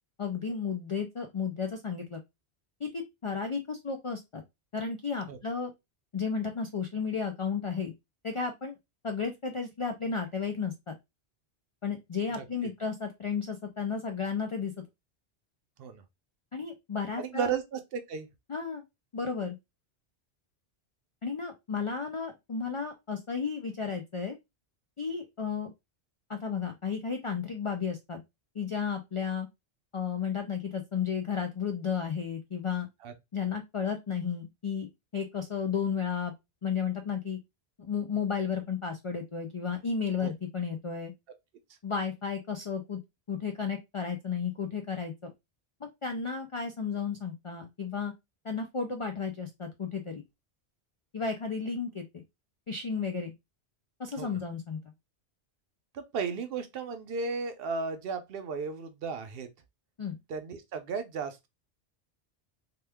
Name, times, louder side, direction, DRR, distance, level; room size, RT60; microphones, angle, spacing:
voice 1, 0.2-2.2 2.8-4.4 4.7-5.7 6.1-7.9 8.2-8.7 9.0-11.0 11.8-14.7 16.5-17.5 18.5-18.8 19.1-19.6 21.2-24.4 25.0-25.7 26.3-28.2 28.6-29.5 29.9-32.9 33.3-36.3 36.6-37.4 37.8-41.1 41.8-43.0 43.3-45.3 46.0-48.1 48.4-50.2 51.1-52.0 52.7-53.3 54.0-54.8 60.0-60.2, left 6 dB, 55° left, 0.3 m, -33 dB
voice 2, 17.2-18.3 33.0-33.1 40.2-40.3 54.2-54.4 55.9-59.5 60.3-61.5, right 5 dB, 65° right, 0.7 m, -34 dB
2.9 x 2.3 x 3.4 m
omnidirectional pair, 1.1 m